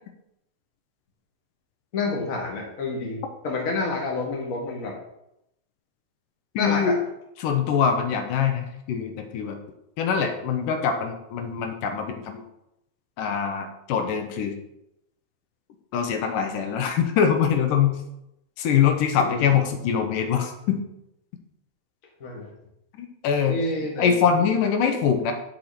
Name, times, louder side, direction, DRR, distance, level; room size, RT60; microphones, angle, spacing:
voice 1, 1.9-4.9 6.6-7.0 19.2-19.6 22.2-22.5 23.5-24.5, left 3 dB, 30° left, -1 dB, 1.8 m, -29 dB
voice 2, 6.6-7.0 7.4-9.6 10.0-12.4 13.2-14.5 15.9-17.9 18.6-20.8 23.0-23.6 24.0-25.3, left 7 dB, 80° left, 5 dB, 2.5 m, -23 dB
10.5 x 6.0 x 4.3 m, 0.83 s
omnidirectional pair, 3.8 m